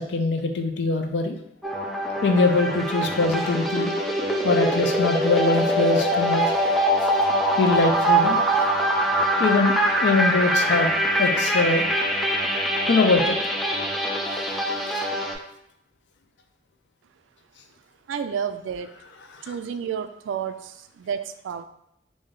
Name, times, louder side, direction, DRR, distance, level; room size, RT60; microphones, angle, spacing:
voice 1, 0.0-1.4 2.2-3.9 4.4-6.6 7.6-8.4 9.4-10.9 11.2-11.9 12.9-13.4 19.4-19.5, left 3 dB, 70° left, 5 dB, 0.5 m, -22 dB
sound 1, 1.6-15.3, right 1 dB, ahead, 0.4 m, -23 dB
voice 2, 18.1-18.9 19.4-21.6, right 7 dB, 90° right, 9 dB, 0.3 m, -31 dB
3.2 x 2.6 x 3.7 m, 0.75 s
head